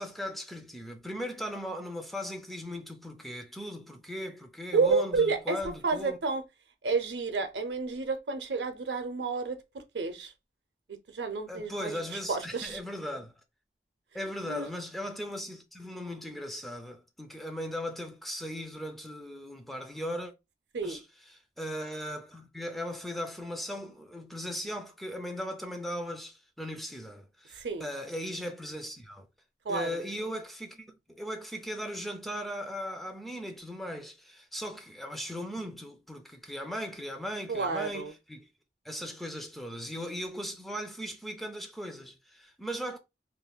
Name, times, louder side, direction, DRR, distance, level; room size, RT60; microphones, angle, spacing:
voice 1, 0.0-6.2 11.5-13.3 14.1-20.3 20.8-29.3 29.7-38.5 38.8-43.0, equal, ahead, 0.4 m, -38 dB
voice 2, 4.7-6.4 6.8-9.6 9.9-10.3 10.9-12.0 12.3-12.8 14.5-14.7 20.7-21.0 27.5-27.8 29.6-30.0 37.5-38.1, right 4 dB, 80° right, 0.6 m, -30 dB
3.6 x 2.5 x 2.3 m
head